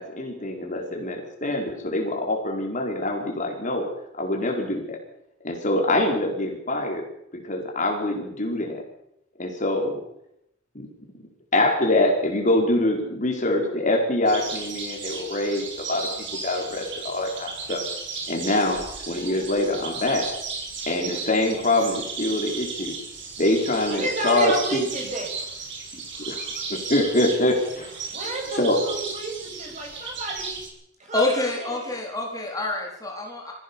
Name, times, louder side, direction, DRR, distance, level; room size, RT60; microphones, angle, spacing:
voice 1, 0.0-3.9 4.1-5.0 5.4-7.0 7.3-8.8 9.4-10.0 10.7-10.9 11.5-17.8 18.3-20.3 20.9-23.0 23.4-24.8 26.3-28.0 28.6-28.8, left 1 dB, 40° left, 2 dB, 4.6 m, -24 dB
sound 1, 14.3-30.7, right 4 dB, 70° right, 6.5 m, -35 dB
voice 2, 23.8-25.3 28.1-30.6 31.0-31.8, right 2 dB, 40° right, -1 dB, 7.8 m, -31 dB
voice 3, 31.1-33.5, left 2 dB, 20° left, 0 dB, 3.9 m, -27 dB
24.0 x 16.0 x 7.2 m, 0.79 s
head